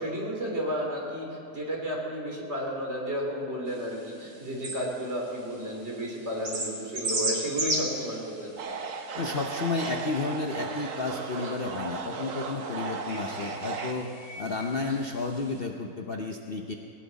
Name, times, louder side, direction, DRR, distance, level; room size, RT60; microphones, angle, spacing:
voice 1, 0.0-8.3, equal, 40° right, -2 dB, 3.5 m, -32 dB
sound 1, 3.7-15.6, right 1 dB, 85° right, 3.0 m, -38 dB
sound 2, 8.6-13.9, right 5 dB, 55° right, 1.3 m, -36 dB
voice 2, 9.1-14.1 14.4-16.7, left 3 dB, 45° left, 2 dB, 0.9 m, -32 dB
19.0 x 18.0 x 4.1 m, 2.9 s
omnidirectional pair, 1.7 m